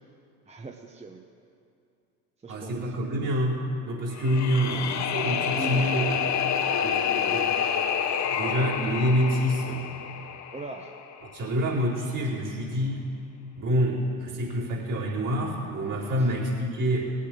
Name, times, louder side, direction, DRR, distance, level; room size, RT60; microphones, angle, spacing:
voice 1, 0.5-1.2 2.4-2.9 4.6-4.9 5.4-5.9 6.5-7.4 10.5-10.9 16.2-16.3, right 2 dB, 15° right, 3 dB, 0.8 m, -40 dB
voice 2, 2.5-6.3 6.8-6.9 7.3-7.5 8.3-9.9 11.3-13.0 13.6-17.1, equal, 50° right, -5 dB, 4.2 m, -27 dB
sound 1, 4.1-11.2, left 8 dB, 40° left, 1.0 m, -28 dB
19.0 x 8.5 x 6.0 m, 2.5 s
hypercardioid pair, 75°, 41 cm